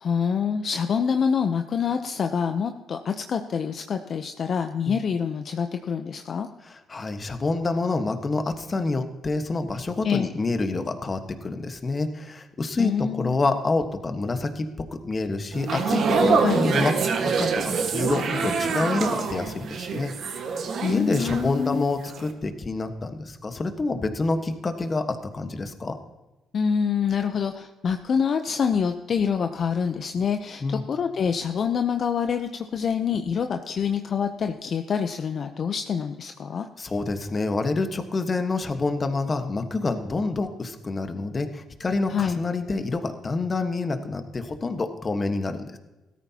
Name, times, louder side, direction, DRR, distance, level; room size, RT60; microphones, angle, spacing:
voice 1, 0.0-6.5 10.0-10.3 12.8-13.3 16.4-16.7 20.8-21.8 26.5-36.7 42.1-42.4, left 6 dB, 55° left, 7 dB, 0.7 m, -26 dB
voice 2, 6.6-20.1 20.9-26.0 30.6-30.8 36.8-45.8, left 3 dB, 30° left, 7 dB, 1.3 m, -27 dB
sound 1, 15.5-21.8 22.1-22.3, right 5 dB, 65° right, 1.5 m, -25 dB
16.5 x 13.5 x 2.9 m, 1.1 s
cardioid pair, 90°, 0 cm